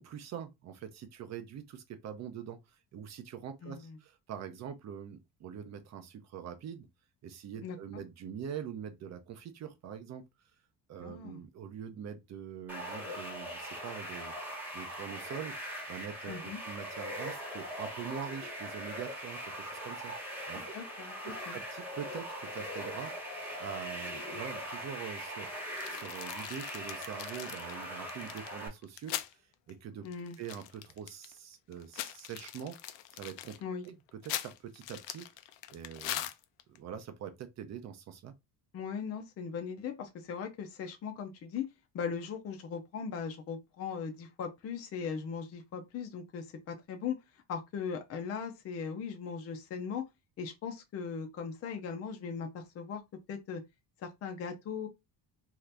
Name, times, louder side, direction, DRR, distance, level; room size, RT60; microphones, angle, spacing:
voice 1, 0.0-2.6 2.9-6.9 7.2-10.2 10.9-14.3 14.7-20.6 21.2-29.4 29.7-30.1 30.4-32.8 33.2-33.6 33.8-35.3 35.7-36.3 36.7-38.3, right 8 dB, 40° right, 0.5 m, -44 dB
voice 2, 3.6-4.0 7.6-8.0 11.0-11.4 16.3-16.6 20.6-21.6 30.0-30.4 33.6-33.9 38.7-41.7 41.9-47.2 47.5-50.0 50.4-53.0 53.3-53.6 54.0-54.9, left 6 dB, 35° left, 0.5 m, -39 dB
sound 1, 12.7-28.7, equal, 5° right, 1.0 m, -41 dB
sound 2, 25.8-29.3 29.7-29.8 30.1-31.3 31.7-36.8, left 13 dB, 85° left, 0.5 m, -41 dB
2.8 x 2.4 x 3.3 m
cardioid pair, 175°, 43 cm